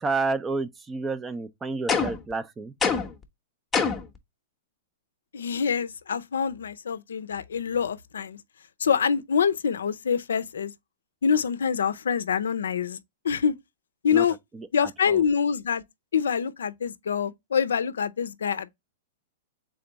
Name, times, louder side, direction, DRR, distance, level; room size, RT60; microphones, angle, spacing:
voice 1, 0.0-2.7 14.1-14.3 14.5-15.2, right 3 dB, 15° right, 0.4 m, -30 dB
sound 1, 1.9-2.3 2.8-3.2 3.7-4.2, left 5 dB, 15° left, 0.7 m, -25 dB
voice 2, 5.3-8.4 8.8-10.7 11.2-13.0 13.2-13.5 14.0-14.3 14.7-15.8 16.1-18.8, left 7 dB, 85° left, 0.5 m, -25 dB
3.7 x 3.4 x 3.9 m
hypercardioid pair, 130°, 0 cm